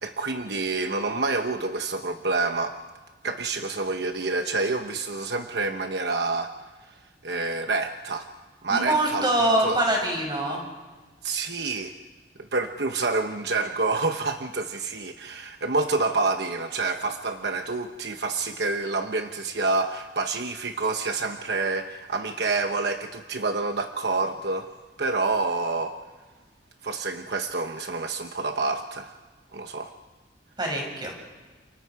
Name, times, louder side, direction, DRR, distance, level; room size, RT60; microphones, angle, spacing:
voice 1, 0.0-2.8 3.2-6.5 7.2-8.3 8.6-9.3 9.6-9.8 11.2-11.9 12.5-24.7 25.0-26.0 26.8-29.1 29.5-29.9, right 3 dB, 70° right, 6 dB, 1.0 m, -28 dB
voice 2, 8.7-10.6 30.6-31.1, right 1 dB, 25° right, 0 dB, 6.6 m, -24 dB
29.5 x 28.5 x 4.8 m, 1.4 s
head